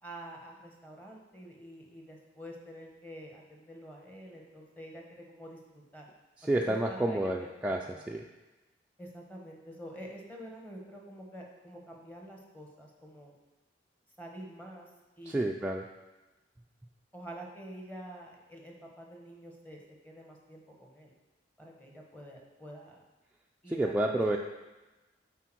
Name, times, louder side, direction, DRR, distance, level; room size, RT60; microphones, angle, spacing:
voice 1, 0.0-6.1 6.4-8.1 9.0-13.3 14.2-14.9 15.2-15.5 17.1-21.1 21.6-23.0 23.6-24.2, right 1 dB, 10° left, 0 dB, 1.0 m, -47 dB
voice 2, 6.4-8.2 15.3-15.8 23.7-24.4, right 1 dB, 5° right, -1 dB, 0.3 m, -30 dB
8.2 x 4.2 x 4.5 m, 1.1 s
head